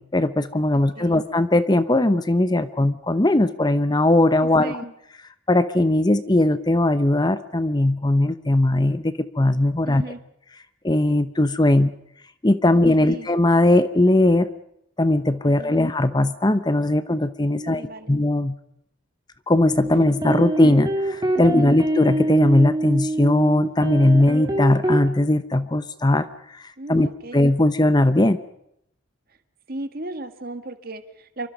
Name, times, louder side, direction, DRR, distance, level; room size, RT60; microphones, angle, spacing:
voice 1, 0.0-4.8 5.5-10.0 10.8-11.9 12.4-14.5 15.0-17.8 18.1-18.6 19.5-26.3 26.5-26.6 26.9-27.1 27.3-28.4, left 1 dB, 20° left, 12 dB, 0.8 m, -19 dB
voice 2, 0.7-1.2 4.4-4.9 9.8-10.2 13.0-13.3 15.4-15.8 17.5-18.2 21.4-21.7 26.8-27.5 29.7-31.5, right 2 dB, 50° right, 8 dB, 1.9 m, -36 dB
sound 1, 19.6-25.1, right 1 dB, 20° right, 2.3 m, -25 dB
27.5 x 24.0 x 5.3 m, 0.74 s
head